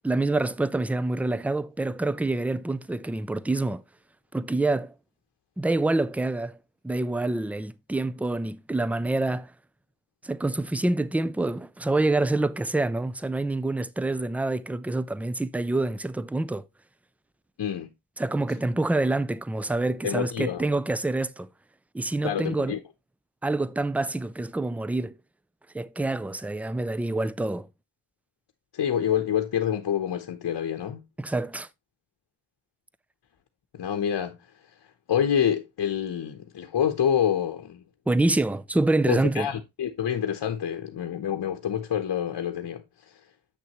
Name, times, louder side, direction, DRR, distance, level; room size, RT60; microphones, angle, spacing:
voice 1, 0.0-3.8 4.3-4.9 5.6-6.6 6.8-9.5 10.2-16.6 18.2-21.5 21.9-22.8 23.4-25.1 25.7-27.7 31.2-31.7 38.1-39.5, right 2 dB, 5° right, 0.3 m, -26 dB
voice 2, 17.6-17.9 20.0-20.6 22.2-22.8 28.7-31.0 33.7-34.4 35.1-37.8 39.1-42.8, left 9 dB, 60° left, 0.9 m, -27 dB
8.1 x 6.3 x 3.0 m
cardioid pair, 80°, 43 cm